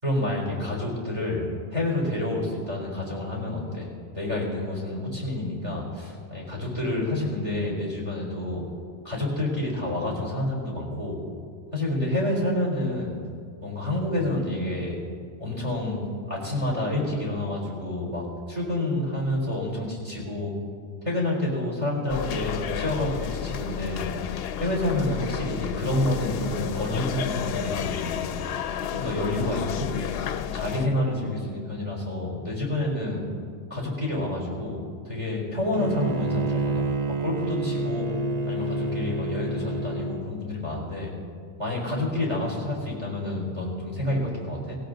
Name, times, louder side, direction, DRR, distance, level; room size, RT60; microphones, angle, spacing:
voice 1, 0.0-1.4 1.7-3.9 4.1-8.6 9.0-11.2 11.7-13.1 13.6-15.0 15.4-16.0 16.3-20.5 21.0-24.0 24.6-28.3 28.9-33.2 33.7-34.8 35.0-38.1 38.5-41.1 41.6-44.8, left 1 dB, 30° right, -1 dB, 4.1 m, -28 dB
sound 1, 22.1-30.9, left 9 dB, 65° left, 0.8 m, -31 dB
Bowed string instrument, 35.7-40.3, right 3 dB, 45° right, 0.7 m, -28 dB
17.5 x 17.0 x 3.9 m, 2.2 s
omnidirectional pair, 1.1 m